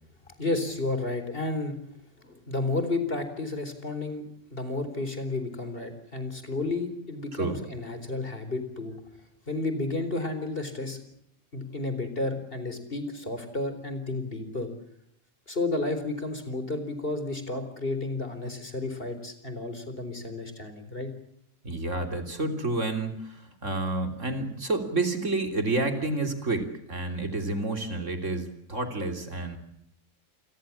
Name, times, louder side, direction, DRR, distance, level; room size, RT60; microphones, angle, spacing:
voice 1, 0.3-1.8 2.2-9.0 9.5-11.0 11.5-14.7 15.5-21.1, left 2 dB, 40° left, 10 dB, 4.4 m, -32 dB
voice 2, 21.6-29.6, right 2 dB, 60° right, 6 dB, 3.6 m, -29 dB
28.5 x 22.5 x 7.3 m, 0.73 s
omnidirectional pair, 1.4 m